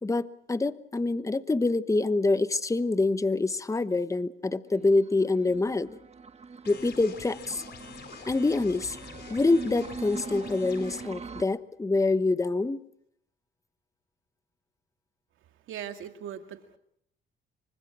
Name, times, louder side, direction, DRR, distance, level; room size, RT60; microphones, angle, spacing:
voice 1, 0.0-6.0 6.7-7.6 8.3-9.0 9.3-12.8, left 3 dB, 15° left, 13 dB, 1.1 m, -26 dB
sound 1, 4.7-11.4, right 4 dB, 30° right, 1.7 m, -42 dB
sound 2, 6.6-11.0, left 6 dB, 55° left, 4.2 m, -46 dB
voice 2, 15.7-16.8, right 9 dB, 80° right, 6 dB, 2.4 m, -39 dB
27.0 x 24.5 x 6.2 m, 0.71 s
cardioid pair, 90°, 20 cm